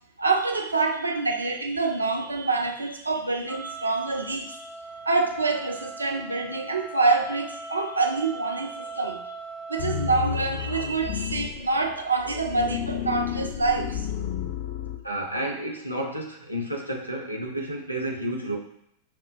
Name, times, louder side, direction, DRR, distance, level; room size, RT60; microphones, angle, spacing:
voice 1, 0.2-4.7 5.1-9.2 9.7-14.1, right 3 dB, 80° right, 4 dB, 0.4 m, -26 dB
Wind instrument woodwind instrument, 3.5-10.3, right 2 dB, ahead, 0.5 m, -40 dB
sound 1, 9.8-15.0, left 9 dB, 55° left, 0.4 m, -31 dB
voice 2, 15.0-18.6, right 1 dB, 90° left, 0 dB, 0.7 m, -31 dB
5.8 x 2.1 x 2.5 m, 0.74 s
figure-of-eight pair, 90°, 0 cm